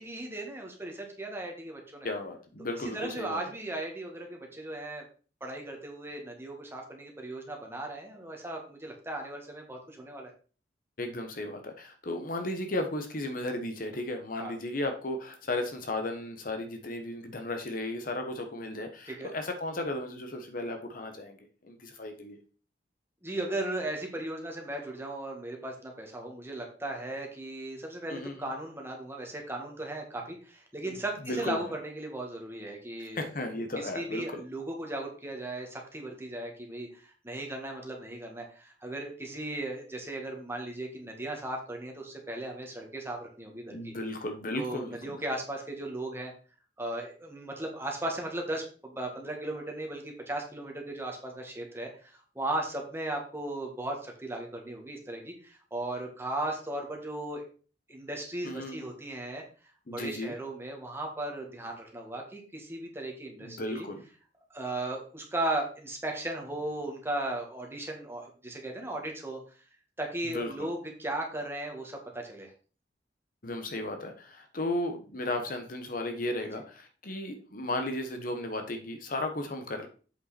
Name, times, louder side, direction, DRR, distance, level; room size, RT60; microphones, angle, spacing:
voice 1, 0.0-2.1 2.8-5.0 5.4-10.3 14.4-14.5 19.1-19.3 23.2-33.3 33.9-43.9 44.5-46.3 46.8-57.4 57.9-59.4 59.9-63.9 64.5-69.6 70.0-72.5 76.5-76.6, right 1 dB, 15° right, 1 dB, 2.0 m, -37 dB
voice 2, 2.0-3.4 11.0-22.4 28.1-28.5 30.9-31.0 31.2-31.7 33.1-34.4 43.7-45.1 58.4-58.9 59.9-60.3 63.4-64.0 70.2-70.7 73.4-79.9, left 1 dB, 50° left, 5 dB, 1.2 m, -35 dB
8.0 x 5.6 x 4.3 m, 0.38 s
head